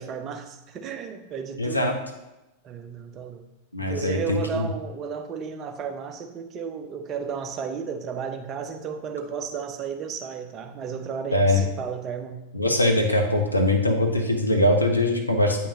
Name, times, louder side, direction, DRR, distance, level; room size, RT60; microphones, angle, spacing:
voice 1, 0.0-1.9 2.6-3.4 3.8-12.4, right 6 dB, 30° right, 7 dB, 0.7 m, -33 dB
voice 2, 1.6-1.9 3.7-4.7 11.3-11.6 12.5-15.7, left 1 dB, 85° left, 2 dB, 0.8 m, -22 dB
8.4 x 5.6 x 2.8 m, 0.97 s
figure-of-eight pair, 90°, 0 cm